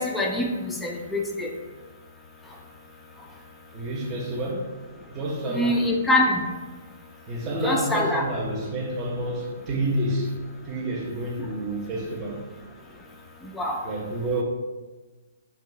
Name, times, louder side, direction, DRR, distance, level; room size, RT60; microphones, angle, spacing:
voice 1, 0.0-1.5 5.5-6.4 7.6-8.2 13.5-13.8, left 1 dB, 10° left, 0 dB, 0.4 m, -24 dB
voice 2, 3.7-4.7 5.1-5.8 7.3-12.4 13.8-14.4, right 1 dB, 25° right, -2 dB, 0.7 m, -29 dB
2.7 x 2.3 x 3.9 m, 1.2 s
hypercardioid pair, 130°, 0 cm